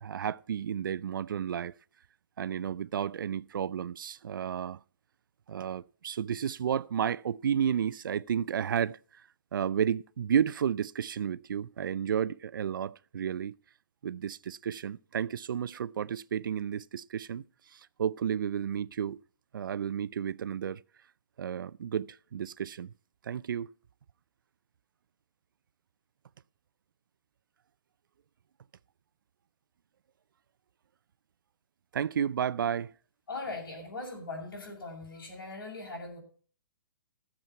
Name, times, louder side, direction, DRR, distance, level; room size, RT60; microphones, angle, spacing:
voice 1, 0.0-1.7 2.4-4.8 5.5-9.0 9.5-13.6 14.0-17.4 17.7-19.2 19.5-20.8 21.4-22.9 23.2-23.7 31.9-32.9, right 8 dB, 70° right, 0.5 m, -32 dB
voice 2, 33.3-36.2, left 3 dB, 85° left, 6.0 m, -40 dB
14.0 x 7.4 x 5.6 m
hypercardioid pair, 170°, 11 cm